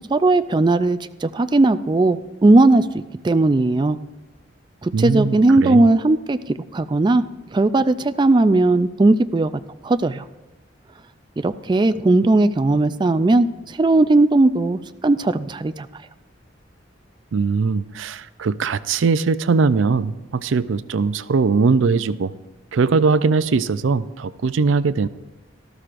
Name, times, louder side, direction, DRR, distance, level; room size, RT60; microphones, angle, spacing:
voice 1, 0.1-4.0 4.8-6.4 6.7-7.2 7.5-9.5 9.8-10.2 11.4-15.9, right 2 dB, 25° right, 11 dB, 0.3 m, -17 dB
voice 2, 4.9-5.8 17.3-22.3 22.7-25.1, right 4 dB, 90° right, 14 dB, 0.5 m, -20 dB
17.5 x 13.0 x 2.5 m, 1.1 s
head